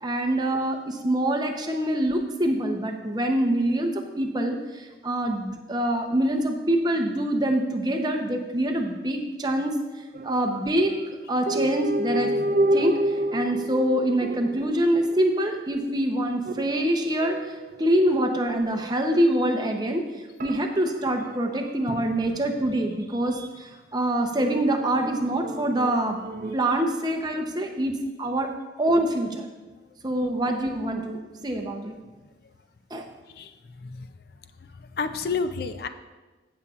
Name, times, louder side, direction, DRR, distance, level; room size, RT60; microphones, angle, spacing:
voice 1, 0.0-9.8 10.2-10.9 11.3-12.3 12.7-20.0 20.4-26.2 26.5-27.9 28.2-28.5 28.8-29.5 30.0-32.0 32.9-33.0, right 1 dB, 20° right, 4 dB, 0.7 m, -25 dB
sound 1, 10.1-10.9 11.5-16.0 16.4-19.8 20.4-23.0 24.4-26.6, right 1 dB, 45° right, 0.4 m, -31 dB
voice 2, 33.3-34.2 34.6-35.9, left 4 dB, 55° left, 9 dB, 0.4 m, -31 dB
15.5 x 7.0 x 2.4 m, 1.2 s
head